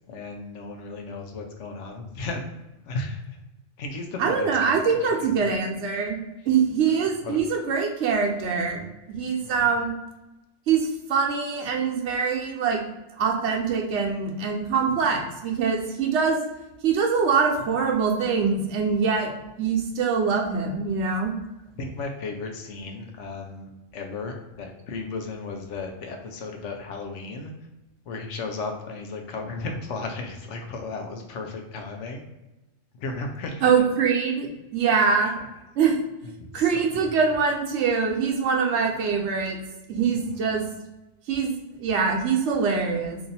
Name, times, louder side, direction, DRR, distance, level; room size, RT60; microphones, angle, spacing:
voice 1, 0.1-2.4 2.8-3.4 3.8-5.5 7.2-7.4 9.4-9.7 21.8-27.5 28.0-32.3 32.9-33.7 36.4-36.7 40.1-40.6, left 3 dB, 70° left, 3 dB, 0.9 m, -35 dB
voice 2, 4.2-6.2 6.5-9.9 10.7-12.8 13.2-16.4 16.8-19.3 19.6-21.3 33.6-35.3 35.8-35.9 36.5-39.6 39.9-40.6 41.3-41.5 41.8-43.2, right 5 dB, 70° right, 0 dB, 1.0 m, -23 dB
3.0 x 2.6 x 4.0 m, 1.0 s
omnidirectional pair, 1.3 m